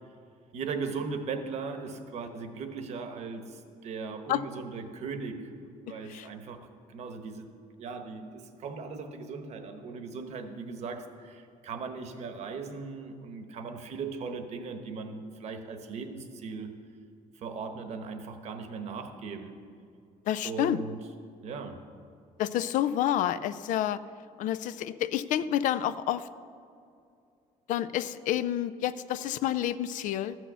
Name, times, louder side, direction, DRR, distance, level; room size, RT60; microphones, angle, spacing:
voice 1, 0.5-5.5 5.9-7.5 7.8-16.7 17.3-19.6 20.4-21.0 21.4-21.8, right 4 dB, 50° right, 7 dB, 1.1 m, -38 dB
voice 2, 20.3-20.8 22.4-24.0 24.4-26.3 27.7-30.4, left 11 dB, 65° left, 14 dB, 0.4 m, -29 dB
14.0 x 6.3 x 6.9 m, 2.5 s
cardioid pair, 165°, 14 cm